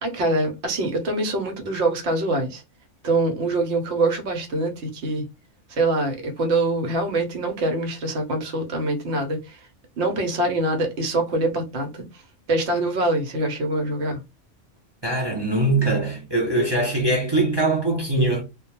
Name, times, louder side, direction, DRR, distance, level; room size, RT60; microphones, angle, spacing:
voice 1, 0.0-2.6 3.0-5.3 5.7-9.6 10.0-12.0 12.5-14.2, right 2 dB, 65° right, 1.0 m, -24 dB
voice 2, 15.0-18.4, right 2 dB, 40° right, 0.4 m, -22 dB
2.2 x 2.2 x 2.9 m
omnidirectional pair, 1.3 m